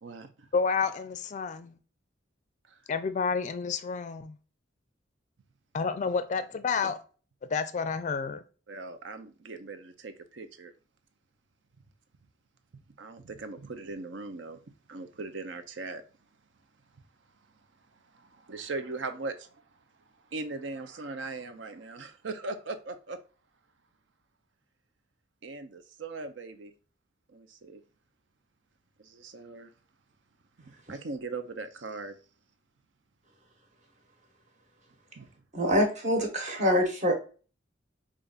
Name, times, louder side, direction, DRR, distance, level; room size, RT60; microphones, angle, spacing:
voice 1, 0.0-0.5 2.7-2.8 8.7-10.7 13.0-14.6 14.9-16.0 18.1-19.8 20.2-23.2 25.4-26.7 27.3-27.8 29.0-29.7 30.6-32.2 35.2-35.3, right 3 dB, 75° right, 0.6 m, -39 dB
voice 2, 0.5-1.7 2.9-4.4 5.7-7.0 7.5-8.4, left 5 dB, 40° left, 0.4 m, -30 dB
voice 3, 35.5-37.1, equal, 40° right, 1.2 m, -25 dB
5.1 x 2.5 x 2.4 m
head